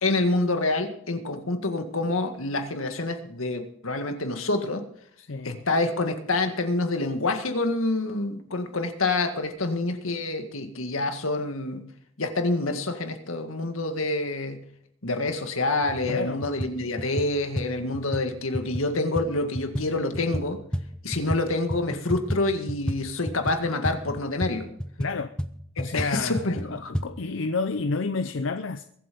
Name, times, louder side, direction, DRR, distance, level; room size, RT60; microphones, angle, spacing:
voice 1, 0.0-4.8 5.4-11.9 12.2-14.6 15.0-20.6 21.0-24.7 25.9-26.9, left 2 dB, 85° left, 1.9 m, -27 dB
voice 2, 5.2-5.6 16.1-16.4 25.0-25.3 25.8-28.8, left 3 dB, 65° left, 0.7 m, -30 dB
sound 1, 15.3-15.4 15.8-16.2 16.4-21.4 21.7-27.1, equal, 5° left, 0.8 m, -32 dB
22.5 x 8.2 x 5.2 m
head